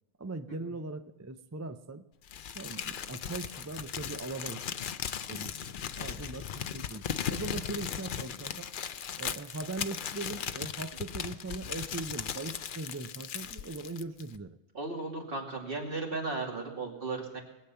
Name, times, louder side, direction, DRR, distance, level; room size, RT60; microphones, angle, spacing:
voice 1, 0.2-2.0 2.5-4.6 5.3-8.7 9.2-14.6, right 3 dB, 25° right, 9 dB, 0.3 m, -40 dB
Crumpling crinkling, 2.3-14.4, left 8 dB, 55° left, 0.7 m, -37 dB
voice 2, 14.7-17.4, right 3 dB, 50° right, 0 dB, 2.7 m, -35 dB
20.5 x 8.4 x 5.6 m, 1.0 s
omnidirectional pair, 1.2 m